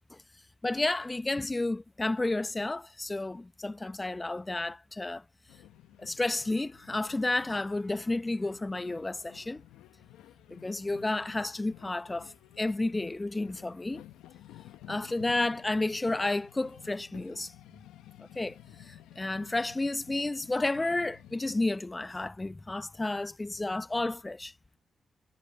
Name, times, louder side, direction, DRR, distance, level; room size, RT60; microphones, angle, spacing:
voice 1, 0.6-5.2 6.0-9.6 10.5-14.0 14.9-17.5 18.2-24.5, left 2 dB, 25° left, 1.1 m, -31 dB
sound 1, 5.5-21.7, left 14 dB, 85° left, 0.9 m, -53 dB
hypercardioid pair, 40°, 0 cm